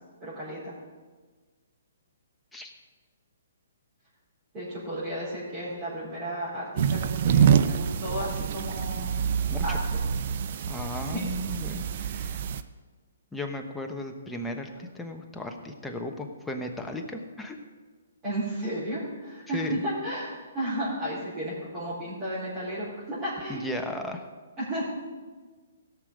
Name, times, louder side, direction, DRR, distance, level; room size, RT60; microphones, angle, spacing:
voice 1, 0.2-0.7 4.5-9.2 9.6-10.0 11.0-11.3 12.3-12.5 18.2-23.6 24.6-24.9, right 1 dB, 25° right, -11 dB, 4.3 m, -33 dB
sound 1, 6.8-12.6, right 8 dB, 50° right, 0.6 m, -26 dB
voice 2, 10.7-12.4 13.3-17.6 19.5-19.8 23.5-24.2, left 1 dB, 5° left, 2 dB, 1.1 m, -35 dB
16.5 x 6.6 x 5.3 m, 1.4 s
hypercardioid pair, 140°, 0 cm